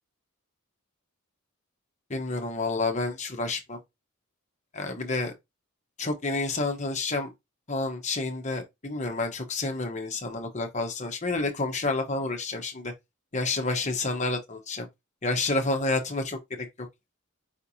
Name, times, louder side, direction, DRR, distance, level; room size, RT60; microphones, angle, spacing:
voice 1, 2.1-3.8 4.7-5.3 6.0-7.3 7.7-12.9 13.3-14.9 15.2-16.7, left 3 dB, 30° left, 1.1 m, -29 dB
5.1 x 3.3 x 2.8 m
head